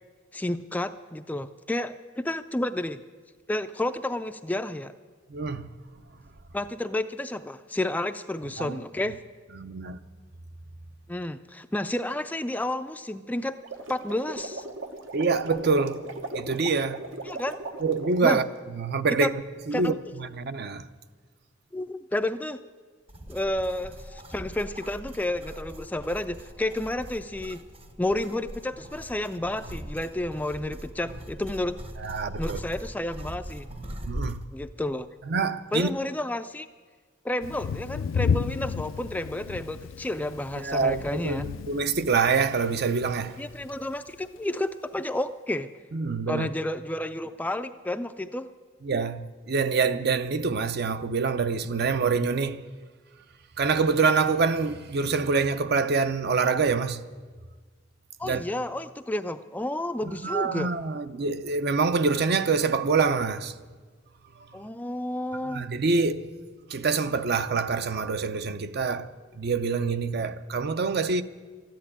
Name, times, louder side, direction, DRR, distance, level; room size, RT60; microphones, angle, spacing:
voice 1, 0.3-3.0 3.5-4.9 6.5-9.2 11.1-13.6 13.9-14.6 17.2-17.6 18.2-18.4 19.2-19.3 19.7-20.0 21.7-22.6 23.3-27.6 28.0-31.8 32.4-33.7 34.5-35.1 35.7-36.7 37.2-41.5 43.4-45.7 46.3-48.5 58.2-60.7 64.5-65.7, left 1 dB, 10° left, 0.3 m, -31 dB
voice 2, 5.3-5.7 8.6-8.8 9.5-10.0 15.1-16.1 16.3-17.0 17.8-18.4 18.7-20.9 32.0-32.6 34.1-34.4 35.3-35.9 40.5-43.4 45.9-46.5 48.8-52.6 53.6-57.0 58.2-58.4 60.2-63.5 65.5-66.3 66.7-71.2, right 4 dB, 55° right, 0.5 m, -26 dB
sound 1, 13.5-18.4, right 2 dB, 75° right, 1.1 m, -38 dB
sound 2, 23.1-34.5, right 1 dB, 30° right, 0.8 m, -40 dB
Thunder, 37.4-44.2, left 6 dB, 80° left, 0.4 m, -33 dB
13.5 x 10.5 x 8.6 m
head